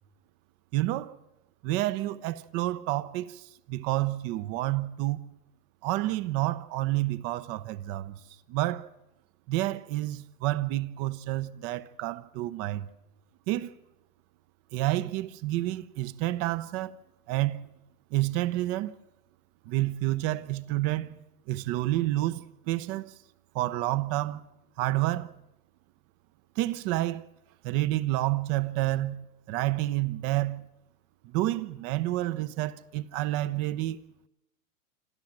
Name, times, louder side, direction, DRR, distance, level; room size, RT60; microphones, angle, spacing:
voice 1, 0.7-1.1 1.6-5.2 5.8-8.2 8.5-8.9 9.5-12.9 13.5-13.7 14.7-17.0 17.3-17.6 18.1-18.9 19.6-21.2 21.5-23.1 23.5-24.4 24.8-25.3 26.6-27.2 27.6-29.2 29.5-30.7 31.2-34.0, right 16 dB, 30° right, 0.8 m, -29 dB
27.0 x 13.0 x 7.4 m
hypercardioid pair, 125°, 47 cm